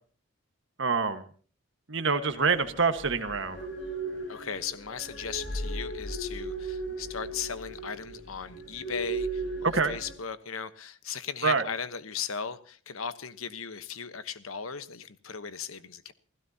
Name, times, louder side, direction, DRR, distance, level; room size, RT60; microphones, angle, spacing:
voice 1, 0.8-1.2 1.9-3.7 9.6-9.9 11.4-11.6, right 4 dB, 60° right, 8 dB, 1.5 m, -26 dB
sound 1, 2.2-10.1, right 2 dB, 55° left, 6.2 m, -37 dB
voice 2, 4.3-16.1, left 6 dB, 80° left, 12 dB, 1.1 m, -37 dB
28.5 x 16.5 x 2.9 m, 0.43 s
head